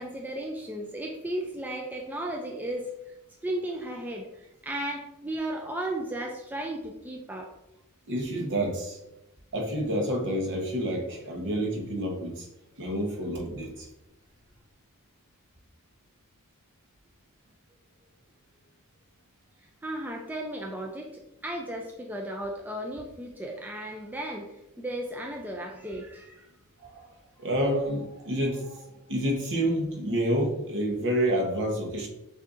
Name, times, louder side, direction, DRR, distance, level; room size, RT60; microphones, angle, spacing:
voice 1, 0.0-2.9 3.4-7.5 19.8-21.1 21.4-26.5, right 1 dB, 10° right, 0 dB, 0.3 m, -35 dB
voice 2, 8.1-9.0 9.5-12.5 12.8-13.9 26.8-27.1 27.4-32.1, right 1 dB, 55° right, 0 dB, 1.0 m, -29 dB
6.3 x 2.7 x 2.5 m, 0.89 s
head